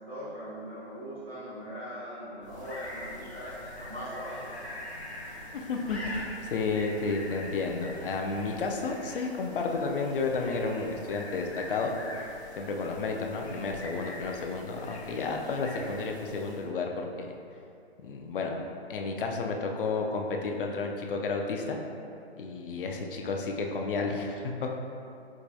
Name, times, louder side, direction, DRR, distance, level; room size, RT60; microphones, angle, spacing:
voice 1, 0.0-4.5, equal, 15° right, -11 dB, 0.4 m, -40 dB
sound 1, 2.4-16.7, left 1 dB, 90° left, 1.0 m, -43 dB
voice 2, 5.5-11.9 12.6-16.9 17.2-17.3 18.0-18.6 18.9-21.8 22.4-24.8, left 4 dB, 55° left, 2 dB, 0.4 m, -31 dB
4.7 x 2.2 x 2.6 m, 2.6 s
hypercardioid pair, 145°, 32 cm